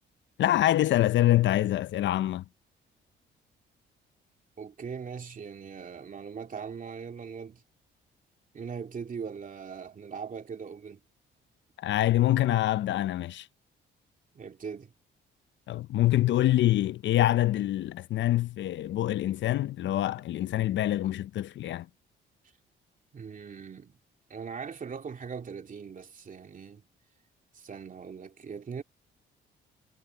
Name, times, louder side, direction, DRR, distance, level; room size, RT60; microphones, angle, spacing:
voice 1, 0.4-2.4 11.8-13.5 15.7-21.9, left 14 dB, 70° left, 0.6 m, -25 dB
voice 2, 4.6-7.6 8.5-11.0 14.3-14.9 23.1-24.0 24.3-26.8 27.5-28.8, right 6 dB, 40° right, 2.6 m, -40 dB
cardioid pair, 90°, 20 cm